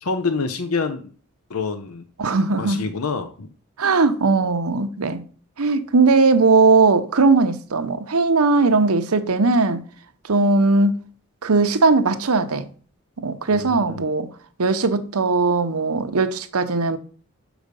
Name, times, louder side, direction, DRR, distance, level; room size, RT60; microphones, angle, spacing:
voice 1, 0.0-1.1 1.5-2.0 2.6-3.5 13.5-14.1, left 4 dB, 90° left, 0.7 m, -27 dB
voice 2, 2.2-2.8 3.8-5.2 5.6-9.8 10.2-11.0 11.4-12.7 13.2-14.3 14.6-17.0, right 3 dB, 90° right, 0.8 m, -18 dB
6.3 x 5.0 x 6.7 m
head